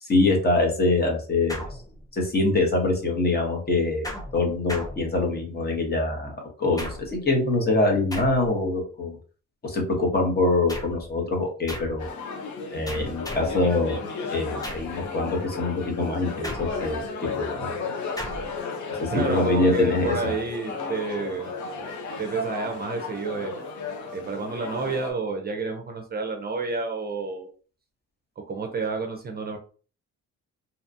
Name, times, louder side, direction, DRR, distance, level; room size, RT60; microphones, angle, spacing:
voice 1, 0.0-1.6 2.1-4.0 4.3-9.1 9.6-12.1 12.7-14.0 14.3-17.7 19.0-20.3, left 2 dB, 30° left, 2 dB, 1.0 m, -24 dB
sound 1, 1.5-2.3 4.0-5.6 6.8-7.3 8.1-8.7 10.7-11.1 11.7-12.1 12.9-13.7 14.6-15.0 16.4-17.1 18.2-18.6, equal, 10° left, 0.6 m, -37 dB
sound 2, 12.0-25.1, left 4 dB, 70° left, 0.7 m, -34 dB
voice 2, 19.1-21.5 22.2-23.5 24.1-27.5 28.5-29.6, right 4 dB, 30° right, 4 dB, 0.5 m, -29 dB
2.8 x 2.3 x 2.6 m, 0.39 s
cardioid pair, 90°, 30 cm